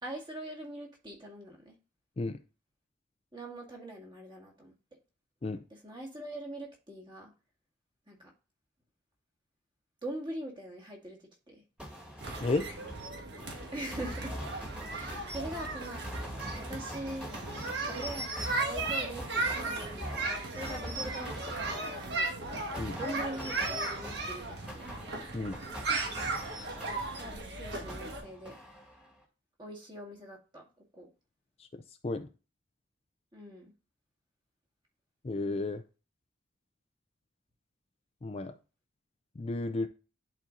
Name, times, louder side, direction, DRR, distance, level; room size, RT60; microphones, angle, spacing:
voice 1, 0.0-1.8 3.3-4.7 5.7-7.3 8.1-8.3 10.0-11.6 13.7-14.3 14.9-16.1 16.6-17.3 17.8-22.3 23.0-24.8 26.7-28.6 29.6-30.6 31.0-31.1 33.3-33.7, right 1 dB, 25° right, 0 dB, 2.0 m, -43 dB
sound 1, 11.8-27.5 27.9-29.2, equal, 5° right, 1.9 m, -44 dB
sound 2, 12.2-28.2, right 3 dB, 60° right, 1.7 m, -36 dB
voice 2, 35.2-35.8 38.2-38.5 39.4-39.9, left 2 dB, 30° left, 9 dB, 0.4 m, -32 dB
10.5 x 4.3 x 2.5 m, 0.33 s
head